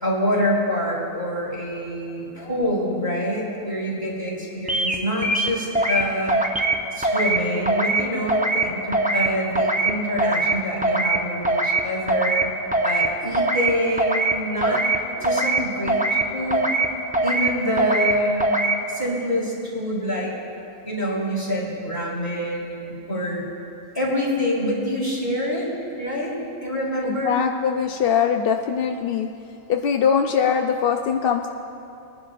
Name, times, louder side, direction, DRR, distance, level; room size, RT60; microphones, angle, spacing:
voice 1, 0.0-6.4 6.9-12.5 12.8-14.8 15.2-16.6 17.2-18.5 18.9-20.3 20.8-23.4 23.9-25.7 26.0-26.3 26.6-27.3, equal, 15° left, -6 dB, 3.3 m, -26 dB
sound 1, 4.7-5.0 5.2-6.0 6.3-6.8 7.0-7.4 7.7-8.0 8.3-8.6 8.9-9.3 9.6-9.9 10.2-10.5 10.8-11.2 11.4-11.8 12.1-12.4 12.7-13.1 13.3-13.7 14.0-14.3 14.6-15.0 15.2-15.6 15.9-16.2 16.5-16.9 17.1-17.5 17.8-18.1 18.4-18.7, right 2 dB, 10° right, 0.4 m, -21 dB
voice 2, 27.0-29.3 29.7-31.5, left 7 dB, 70° left, 4 dB, 0.5 m, -22 dB
21.5 x 11.0 x 2.5 m, 2.8 s
omnidirectional pair, 1.5 m